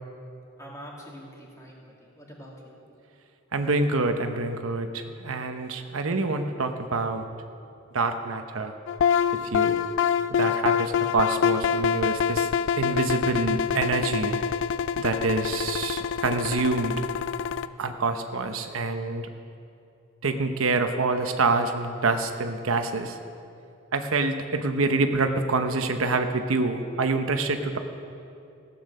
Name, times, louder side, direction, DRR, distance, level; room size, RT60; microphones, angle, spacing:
voice 1, 0.6-2.8, equal, 15° left, -3 dB, 2.5 m, -45 dB
voice 2, 3.5-7.2 7.9-8.8 9.4-9.8 10.3-12.5 12.8-14.4 15.0-17.0 17.8-19.3 20.2-23.2 23.9-27.8, right 3 dB, 75° right, 7 dB, 0.8 m, -26 dB
sound 1, 8.9-17.7, left 7 dB, 65° left, 0.4 m, -26 dB
15.5 x 8.7 x 6.5 m, 2.6 s
head